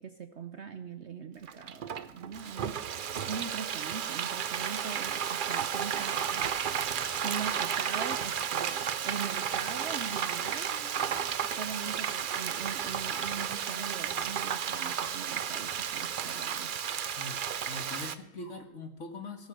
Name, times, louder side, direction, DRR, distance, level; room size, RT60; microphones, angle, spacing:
voice 1, 0.0-6.5 7.2-10.7 11.4-16.7, right 6 dB, 55° right, 10 dB, 0.8 m, -41 dB
Frying (food), 1.5-18.1, right 8 dB, 85° right, 0.4 m, -33 dB
sound 1, 5.4-6.5 7.1-9.3 9.7-13.4 13.7-15.6 16.2-17.7 18.4-18.5, left 1 dB, 70° left, 4.2 m, -52 dB
sound 2, 6.1-16.5, right 1 dB, 10° right, 2.6 m, -59 dB
voice 2, 17.7-19.5, left 2 dB, 50° left, 6 dB, 1.9 m, -42 dB
18.0 x 8.3 x 6.6 m, 0.89 s
omnidirectional pair, 1.7 m